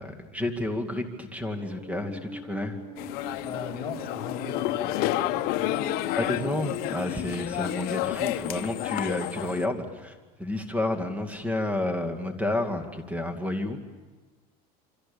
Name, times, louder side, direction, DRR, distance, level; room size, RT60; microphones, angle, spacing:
voice 1, 0.0-2.8 6.1-13.8, left 1 dB, 5° right, 6 dB, 2.3 m, -30 dB
Musical instrument, 1.4-8.3, left 2 dB, 10° left, 4.5 m, -44 dB
sound 1, 1.6-10.3, left 1 dB, 65° right, 6.9 m, -56 dB
sound 2, 3.0-9.7, left 15 dB, 55° left, 0.9 m, -30 dB
voice 2, 3.4-5.8, left 5 dB, 25° left, -1 dB, 6.6 m, -38 dB
28.0 x 25.0 x 7.1 m, 1.3 s
supercardioid pair, 140°, 19 cm